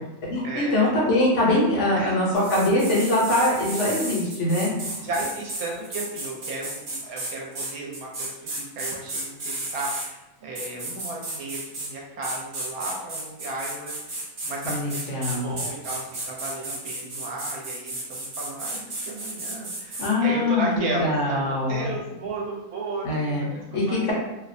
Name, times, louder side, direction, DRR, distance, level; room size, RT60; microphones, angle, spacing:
voice 1, 0.3-5.0 14.6-15.5 20.0-21.9 23.0-23.5 23.7-24.1, left 1 dB, 65° left, -4 dB, 0.8 m, -23 dB
voice 2, 2.0-2.4 5.0-24.1, right 2 dB, 75° right, -2 dB, 1.1 m, -34 dB
sound 1, 2.3-10.1 10.5-11.9 12.2-20.1, right 2 dB, 50° right, 0.6 m, -33 dB
2.7 x 2.1 x 2.5 m, 0.99 s
omnidirectional pair, 1.6 m